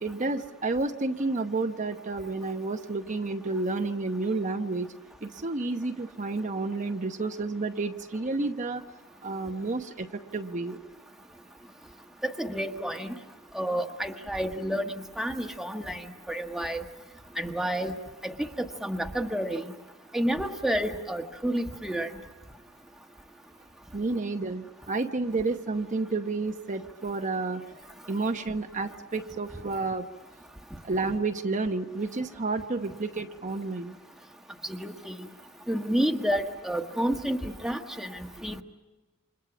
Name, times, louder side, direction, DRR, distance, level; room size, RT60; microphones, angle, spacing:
voice 1, 0.0-4.9 5.2-8.8 9.2-10.8 23.9-27.6 28.1-30.1 30.8-34.0, right 3 dB, 35° right, 5 dB, 1.0 m, -30 dB
voice 2, 12.2-13.2 13.5-16.8 17.4-17.9 18.2-19.7 20.1-22.1 34.6-35.3 35.7-38.6, equal, ahead, 4 dB, 1.4 m, -30 dB
29.5 x 27.0 x 6.1 m, 1.2 s
head